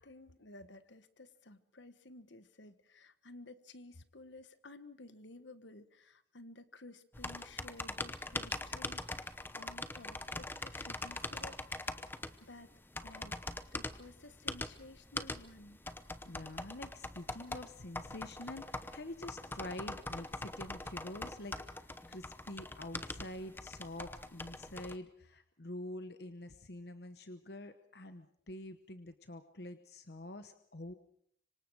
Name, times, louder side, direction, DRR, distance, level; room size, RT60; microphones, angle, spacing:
voice 1, 0.0-12.0 12.4-12.7 13.0-13.4 13.7-15.8, left 2 dB, 75° left, 12 dB, 1.4 m, -54 dB
sound 1, 7.1-25.0, left 2 dB, 10° left, 0.8 m, -43 dB
voice 2, 16.3-30.9, left 1 dB, 60° left, 9 dB, 1.0 m, -47 dB
26.0 x 24.5 x 4.8 m, 0.65 s
head